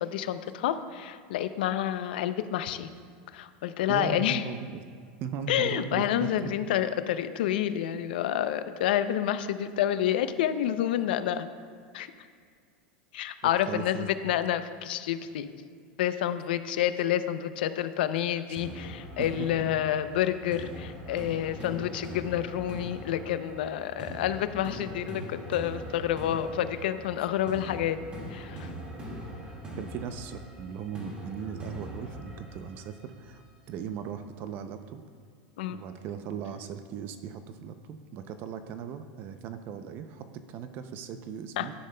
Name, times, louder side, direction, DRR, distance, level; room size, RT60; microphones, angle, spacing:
voice 1, 0.0-2.9 3.3-4.4 5.5-11.5 11.9-12.1 13.1-15.5 16.0-28.0 28.3-28.7 35.6-35.8 41.6-41.7, left 11 dB, 80° left, 11 dB, 0.5 m, -29 dB
voice 2, 3.9-4.8 5.2-6.5 13.4-14.1 17.1-17.2 28.2-28.3 29.8-35.0 35.7-41.7, right 7 dB, 40° right, 9 dB, 0.5 m, -38 dB
sound 1, 18.6-33.5, equal, 20° right, 1.8 m, -42 dB
11.5 x 10.5 x 2.2 m, 2.1 s
supercardioid pair, 150°, 5 cm